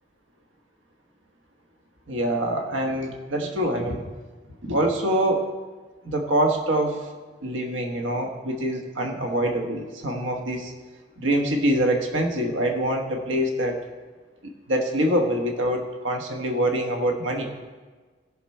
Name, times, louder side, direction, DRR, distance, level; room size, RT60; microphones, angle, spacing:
voice 1, 2.1-4.1 4.6-5.4 6.0-7.1 7.4-10.7 11.2-13.8 14.7-17.5, right 1 dB, 90° right, 3 dB, 1.2 m, -25 dB
15.0 x 5.9 x 4.4 m, 1.4 s
head